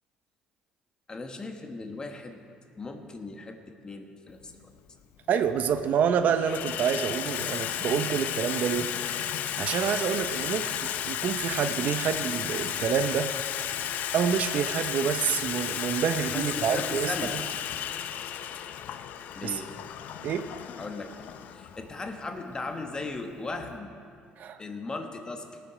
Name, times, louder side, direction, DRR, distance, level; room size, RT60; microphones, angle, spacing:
voice 1, 1.1-2.4 2.8-4.7 16.3-17.3 19.3-19.7 20.8-21.1 21.5-23.9 24.6-25.6, left 3 dB, 25° left, 5 dB, 1.3 m, -37 dB
Water tap faucet / Sink (filling or washing), 4.4-4.5 5.5-5.9 6.2-23.8, left 10 dB, 65° left, 0.5 m, -34 dB
voice 2, 5.3-8.9 9.6-13.3 14.1-17.1 19.4-19.6 20.2-20.4 24.4-24.6, right 7 dB, 60° right, 10 dB, 0.7 m, -27 dB
18.5 x 6.9 x 4.9 m, 2.4 s
supercardioid pair, 90°, 3 cm